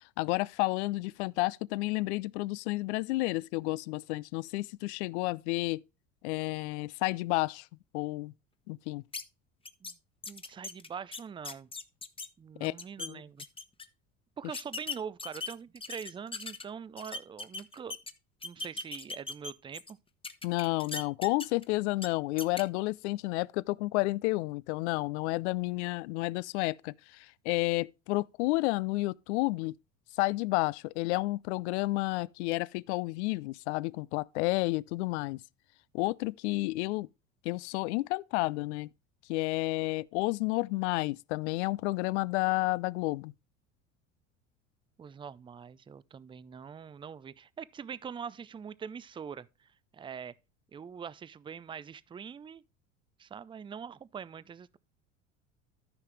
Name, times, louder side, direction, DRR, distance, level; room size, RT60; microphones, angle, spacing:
voice 1, 0.2-5.8 6.2-7.7 7.9-8.3 8.7-9.0 12.6-12.7 13.0-13.2 20.4-29.8 30.2-35.4 35.9-37.1 37.4-38.9 39.3-43.3, left 21 dB, 65° left, 0.5 m, -31 dB
sound 1, 9.1-9.2 9.7-9.9 10.2-12.3 12.6-13.1 13.4-13.9 14.5-16.6 17.0-18.1 18.4-19.9 20.2-21.6 22.0-22.1 22.4-22.6, left 3 dB, 15° left, 1.1 m, -39 dB
voice 2, 10.3-11.7 12.4-13.4 14.4-18.0 18.4-20.0 45.0-50.3 50.7-52.6 53.2-54.8, right 7 dB, 15° right, 0.4 m, -43 dB
14.0 x 5.7 x 3.3 m
hypercardioid pair, 75°, 37 cm